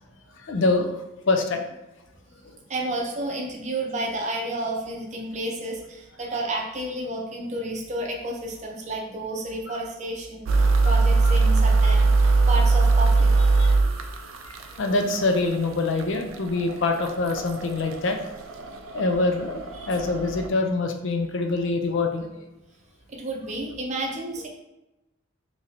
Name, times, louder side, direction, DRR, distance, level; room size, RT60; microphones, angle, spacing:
voice 1, 0.4-1.0 1.3-1.6 2.4-2.6 9.7-9.8 10.8-11.0 11.2-11.4 11.8-11.9 13.6-14.2 14.4-18.2 18.9-22.4, left 3 dB, 60° left, 5 dB, 0.5 m, -25 dB
voice 2, 2.7-13.5 19.8-19.9 23.1-24.5, right 1 dB, 35° right, 0 dB, 0.6 m, -31 dB
sound 1, 10.5-20.5, right 3 dB, 75° right, 0.4 m, -22 dB
3.0 x 2.6 x 4.1 m, 0.97 s
head